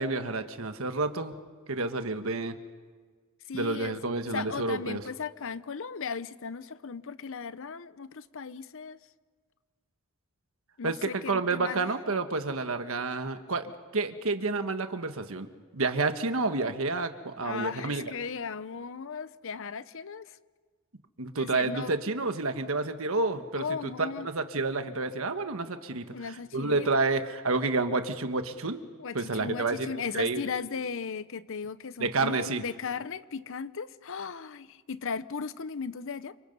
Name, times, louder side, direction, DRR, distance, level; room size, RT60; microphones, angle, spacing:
voice 1, 0.0-1.3 1.7-2.5 3.5-5.0 10.8-18.1 21.2-23.6 24.0-28.8 29.1-30.4 32.0-32.6, right 3 dB, 70° right, 1.4 m, -29 dB
voice 2, 3.5-4.0 4.3-9.0 10.8-11.9 17.4-20.4 21.4-21.9 23.5-24.3 26.1-26.9 29.0-36.4, left 5 dB, 65° left, 0.8 m, -37 dB
29.0 x 26.0 x 5.5 m
head